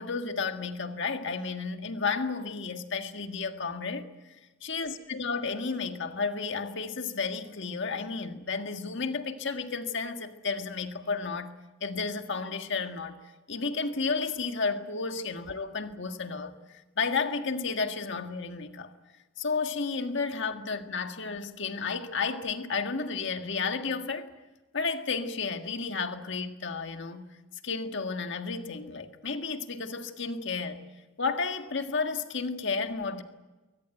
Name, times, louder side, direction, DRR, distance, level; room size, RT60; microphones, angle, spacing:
voice 1, 0.0-4.1 4.6-11.5 11.8-13.2 13.5-16.6 17.0-18.9 19.4-24.3 24.7-27.3 27.6-30.9 31.2-33.2, left 4 dB, 60° left, 1.7 m, -32 dB
22.5 x 19.0 x 9.1 m
head